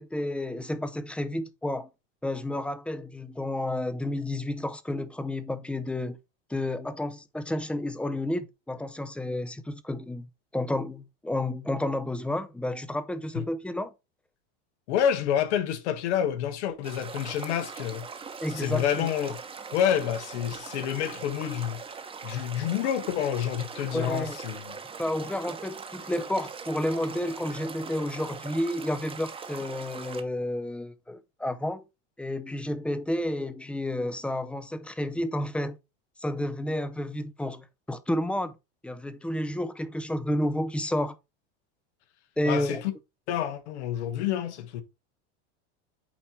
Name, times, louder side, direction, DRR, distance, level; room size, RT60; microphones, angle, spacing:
voice 1, 0.0-1.9 2.2-6.2 6.5-10.3 10.5-13.9 18.4-19.1 23.9-24.4 25.0-31.9 32.2-35.8 36.2-38.5 38.8-41.1 42.4-42.8, left 1 dB, 5° left, 0.5 m, -31 dB
voice 2, 14.9-18.1 18.5-19.4 19.7-21.8 22.2-24.7 42.4-42.9 43.3-44.8, left 9 dB, 85° left, 1.3 m, -28 dB
sound 1, 16.8-30.2, right 5 dB, 15° right, 0.9 m, -41 dB
8.8 x 3.0 x 4.3 m
supercardioid pair, 130°, 34 cm